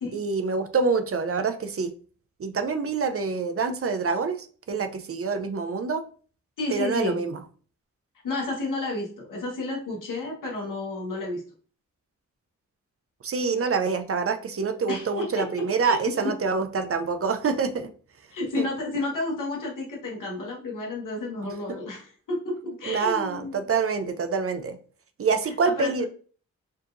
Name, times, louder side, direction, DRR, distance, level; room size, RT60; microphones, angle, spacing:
voice 1, 0.1-1.9 2.4-6.0 6.7-7.4 13.2-17.9 18.6-18.7 21.4-21.5 22.9-24.8 25.2-26.1, right 4 dB, 45° right, 9 dB, 0.5 m, -26 dB
voice 2, 6.6-7.2 8.2-11.4 14.9-16.3 18.3-23.7 25.6-26.1, left 2 dB, 90° left, -2 dB, 1.4 m, -31 dB
4.5 x 2.9 x 2.5 m, 0.41 s
cardioid pair, 75°, 31 cm